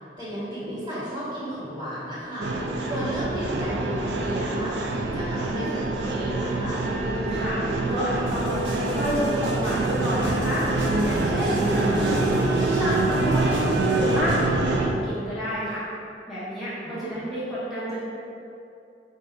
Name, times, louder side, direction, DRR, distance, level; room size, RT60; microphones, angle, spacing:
voice 1, 0.2-2.5 2.8-6.8 16.8-17.2, equal, 25° right, -10 dB, 1.3 m, -33 dB
sound 1, 2.4-14.9, right 2 dB, 70° right, 0.4 m, -25 dB
voice 2, 7.3-7.6 7.9-10.6 11.0-13.6 13.9-15.8 16.3-18.0, equal, ahead, -12 dB, 0.6 m, -29 dB
sound 2, 8.3-14.4, right 1 dB, 90° right, 0.9 m, -39 dB
3.9 x 2.5 x 4.3 m, 2.7 s
head